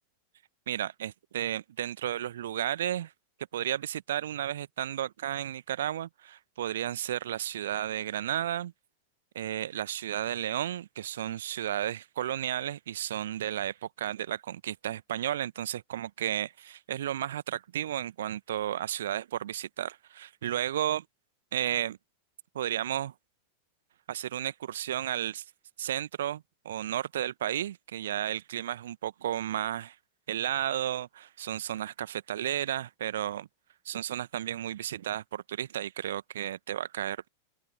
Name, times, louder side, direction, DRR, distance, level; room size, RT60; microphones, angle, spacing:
voice 1, 0.7-3.1 3.5-8.7 9.3-21.0 21.5-22.0 22.5-23.1 24.1-25.4 25.8-29.9 30.3-33.5 33.8-37.3, right 11 dB, 60° right, 1.2 m, -33 dB
open air
figure-of-eight pair, 90°, 0 cm